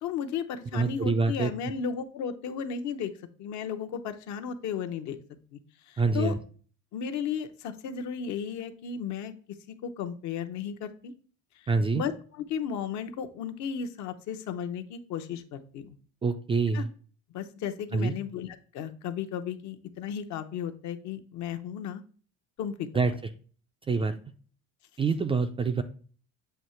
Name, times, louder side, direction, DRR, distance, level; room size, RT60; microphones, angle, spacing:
voice 1, 0.0-3.1 3.4-5.6 5.9-6.3 6.9-9.3 9.8-11.1 11.6-16.0 16.7-16.9 17.3-22.0 22.6-22.9, left 7 dB, 60° left, 8 dB, 0.8 m, -34 dB
voice 2, 0.7-1.5 6.0-6.4 11.7-12.0 16.2-16.9 17.9-18.1 22.9-23.1 23.9-24.1 25.0-25.8, right 4 dB, 20° right, 7 dB, 0.3 m, -26 dB
7.8 x 2.8 x 4.2 m, 0.42 s
cardioid pair, 150°, 32 cm